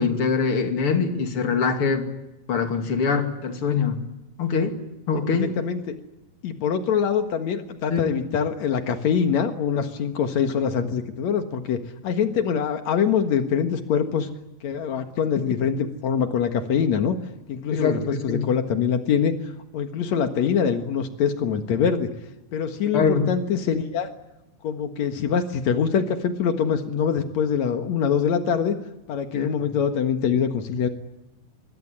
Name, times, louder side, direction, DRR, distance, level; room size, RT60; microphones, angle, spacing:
voice 1, 0.0-2.0 2.5-4.0 4.4-4.8 5.1-5.5 7.9-8.1 17.7-18.5 22.9-23.3 29.3-29.5, left 5 dB, 35° left, 5 dB, 2.4 m, -23 dB
voice 2, 5.3-5.9 6.4-14.3 14.6-17.2 17.5-19.3 19.7-22.1 22.5-24.1 24.6-28.8 29.1-30.9, left 7 dB, 85° left, 7 dB, 1.6 m, -24 dB
25.5 x 21.5 x 9.9 m, 0.99 s
omnidirectional pair, 5.6 m